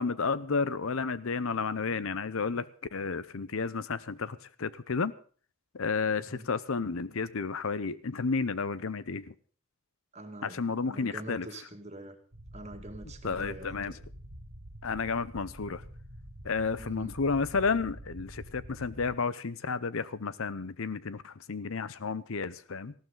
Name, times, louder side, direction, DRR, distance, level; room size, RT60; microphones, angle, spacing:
voice 1, 0.0-5.1 5.7-9.3 10.4-11.5 13.2-14.0 14.8-15.8 16.4-22.9, left 4 dB, 65° left, 0.7 m, -32 dB
voice 2, 6.2-6.5 10.1-12.2 12.5-14.0 16.8-17.1, right 1 dB, 30° right, 2.1 m, -45 dB
sound 1, 12.3-19.2, equal, 85° right, 2.1 m, -47 dB
18.5 x 14.5 x 3.9 m
head